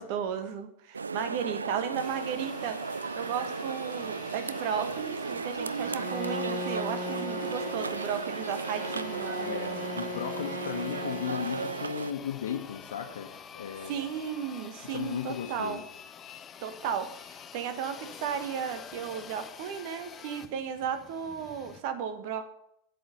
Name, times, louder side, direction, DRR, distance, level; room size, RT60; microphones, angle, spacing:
voice 1, 0.0-2.8 3.2-9.8 13.8-15.8 16.6-22.4, right 8 dB, 55° right, 9 dB, 1.4 m, -35 dB
sound 1, 0.9-12.1, right 5 dB, 80° right, 0.3 m, -35 dB
sound 2, 2.0-21.8, left 7 dB, 30° left, 0.8 m, -47 dB
Bowed string instrument, 5.8-12.1, left 3 dB, 10° left, 1.7 m, -39 dB
voice 2, 9.4-14.0 14.9-15.8, left 8 dB, 70° left, 3 dB, 1.2 m, -36 dB
8.4 x 8.0 x 6.8 m, 0.76 s
figure-of-eight pair, 85°, 0 cm